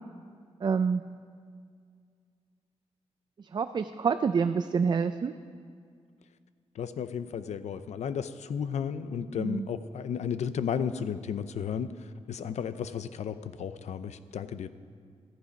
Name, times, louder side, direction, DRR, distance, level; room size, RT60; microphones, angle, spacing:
voice 1, 0.6-1.0 3.4-5.3 9.4-9.7, right 6 dB, 40° right, 10 dB, 0.4 m, -27 dB
voice 2, 6.8-14.7, left 7 dB, 90° left, 12 dB, 0.5 m, -33 dB
14.0 x 11.5 x 5.2 m, 2.1 s
wide cardioid pair, 120°, 11 cm